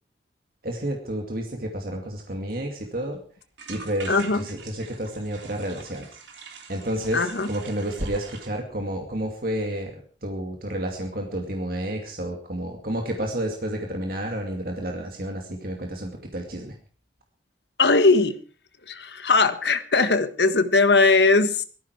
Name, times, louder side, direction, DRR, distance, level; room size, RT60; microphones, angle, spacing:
voice 1, 0.6-3.2 3.7-6.1 6.7-16.7, right 1 dB, 50° right, 2 dB, 2.4 m, -30 dB
sound 1, 2.2-2.3 2.5-2.6 2.8-3.1 3.6-8.5, right 5 dB, 80° right, 3.1 m, -44 dB
voice 2, 4.1-4.4 7.1-7.5 17.8-18.4 18.9-21.6, left 3 dB, 70° left, 10 dB, 1.5 m, -19 dB
17.5 x 14.5 x 4.8 m, 0.39 s
head